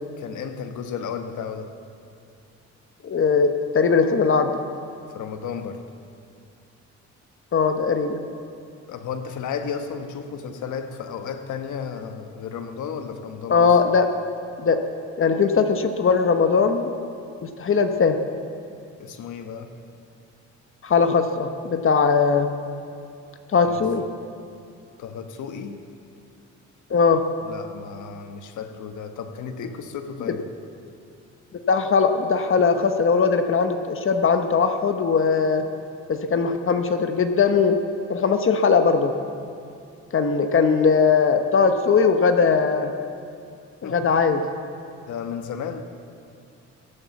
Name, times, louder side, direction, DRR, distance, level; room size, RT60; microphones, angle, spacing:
voice 1, 0.2-1.7 5.1-5.8 8.9-13.7 19.0-19.8 23.6-23.8 25.0-25.8 27.4-30.4 43.8-44.0 45.1-45.8, left 6 dB, 75° left, 7 dB, 1.2 m, -33 dB
voice 2, 3.0-4.5 7.5-8.2 13.5-14.1 14.6-14.8 15.2-17.0 17.4-18.2 20.8-22.5 23.5-24.0 26.9-27.2 30.2-30.3 31.7-35.6 36.1-37.8 38.1-39.1 40.1-42.9 43.8-44.4, left 5 dB, 45° left, 7 dB, 1.0 m, -20 dB
16.5 x 8.9 x 7.1 m, 2.5 s
cardioid pair, 90°, 30 cm